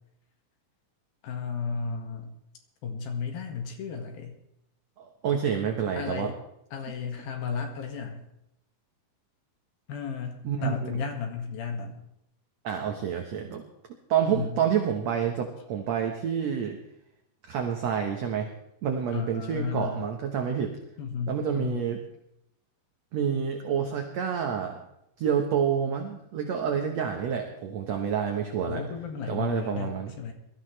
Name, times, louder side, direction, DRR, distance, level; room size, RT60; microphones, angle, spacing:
voice 1, 1.2-2.4 2.8-4.3 6.0-6.4 6.7-8.2 9.9-12.0 14.3-14.6 19.1-20.1 21.0-21.9 28.7-30.3, left 5 dB, 75° left, 3 dB, 3.6 m, -34 dB
voice 2, 5.0-6.3 10.4-11.0 12.6-13.6 14.1-16.8 17.5-18.5 18.8-20.8 21.3-22.0 23.1-24.8 25.2-28.9 29.3-30.1, right 8 dB, 65° right, 3 dB, 1.9 m, -28 dB
22.0 x 14.0 x 3.3 m, 0.80 s
omnidirectional pair, 4.3 m